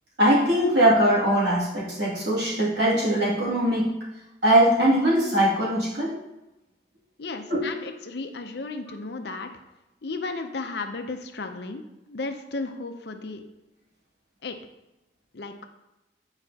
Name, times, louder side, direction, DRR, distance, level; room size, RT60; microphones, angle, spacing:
voice 1, 0.2-3.9 4.4-6.1 7.5-7.6, right 1 dB, 70° right, -7 dB, 2.5 m, -21 dB
voice 2, 7.2-9.5 10.0-13.4 14.4-14.6 15.3-15.6, left 3 dB, 60° left, 6 dB, 0.6 m, -34 dB
8.9 x 4.8 x 2.8 m, 0.96 s
head